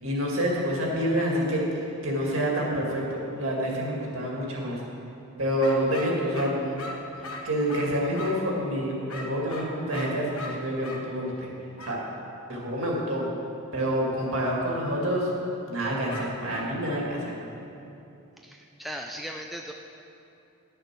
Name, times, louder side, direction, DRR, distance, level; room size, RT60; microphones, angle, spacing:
voice 1, 0.0-1.6 2.0-4.8 5.4-6.8 7.1-11.5 11.8-12.0 12.5-13.2 13.7-15.3 15.7-17.4, equal, 65° right, -3 dB, 2.2 m, -27 dB
sound 1, 5.6-8.5 9.1-11.1 11.8-12.0 16.1-16.8, left 2 dB, 80° left, 1.2 m, -39 dB
voice 2, 18.4-19.7, equal, ahead, 1 dB, 0.3 m, -38 dB
11.5 x 6.7 x 6.1 m, 2.8 s
head